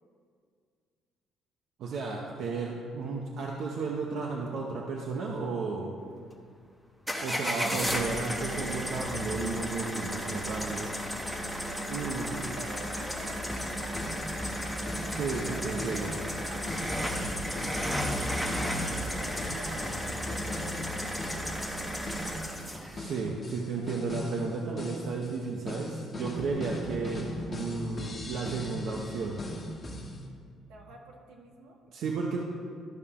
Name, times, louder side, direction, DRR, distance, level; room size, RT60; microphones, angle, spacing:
voice 1, 1.8-6.0 7.2-10.9 11.9-12.5 15.1-16.1 22.9-29.4 30.0-30.2 31.9-32.4, right 4 dB, 60° right, -1 dB, 0.9 m, -33 dB
sound 1, 7.1-23.0, equal, ahead, 0.9 m, -33 dB
voice 2, 11.6-22.6 26.3-26.9 30.7-31.8, right 3 dB, 80° right, 0 dB, 1.4 m, -49 dB
sound 2, 13.2-21.8 22.1-24.5 24.8-30.2, left 1 dB, 30° left, 1.3 m, -39 dB
13.0 x 5.6 x 3.7 m, 2.1 s
cardioid pair, 145°, 0 cm